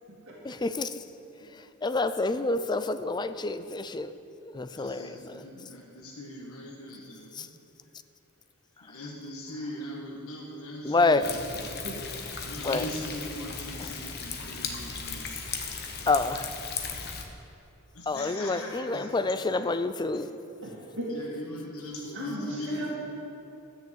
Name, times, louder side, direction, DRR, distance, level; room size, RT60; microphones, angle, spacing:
voice 1, 0.4-1.0 1.8-4.1 4.4-5.4 7.4-7.5 10.8-11.2 12.6-12.8 16.1-16.5 18.1-20.3, left 3 dB, 20° left, 11 dB, 0.4 m, -28 dB
voice 2, 4.7-7.5 8.8-11.4 12.3-15.5 17.9-19.7 20.1-20.2 21.1-23.0, left 1 dB, 85° left, -2 dB, 1.5 m, -40 dB
Thunder, 11.2-17.2, left 5 dB, 50° left, 1.2 m, -36 dB
voice 3, 20.6-21.1 22.1-23.0, right 1 dB, 55° right, -5 dB, 2.3 m, -37 dB
13.5 x 6.7 x 8.0 m, 2.8 s
head